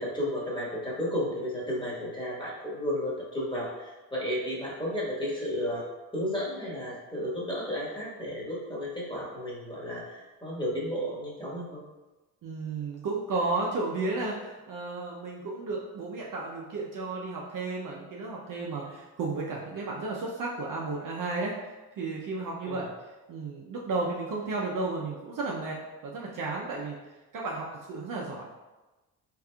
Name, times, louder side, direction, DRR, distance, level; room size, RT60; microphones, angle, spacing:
voice 1, 0.0-5.8 6.1-11.8 22.7-22.9, equal, 10° left, -6 dB, 1.5 m, -33 dB
voice 2, 12.4-22.9 23.3-27.0 27.3-28.6, right 3 dB, 45° right, -2 dB, 0.6 m, -33 dB
3.4 x 3.2 x 2.3 m, 1.1 s
supercardioid pair, 60°, 44 cm